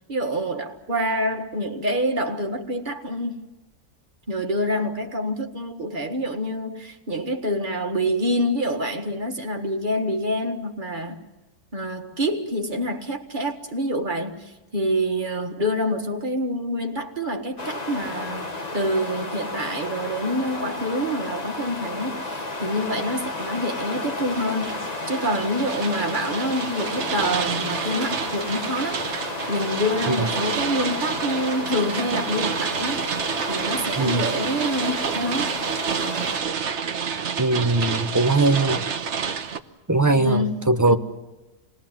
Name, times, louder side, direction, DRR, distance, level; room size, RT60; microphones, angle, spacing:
voice 1, 0.1-3.4 4.3-11.2 11.7-29.0 29.5-33.0 33.5-35.6 40.1-41.0, equal, 35° right, 1.9 m, -27 dB
sound 1, 17.6-36.4, left 2 dB, 30° left, 1.5 m, -32 dB
sound 2, 24.3-39.6, right 6 dB, 60° right, 1.2 m, -29 dB
voice 2, 37.4-38.8 39.9-40.9, right 3 dB, 15° right, 0.9 m, -20 dB
27.0 x 20.0 x 7.5 m
omnidirectional pair, 1.4 m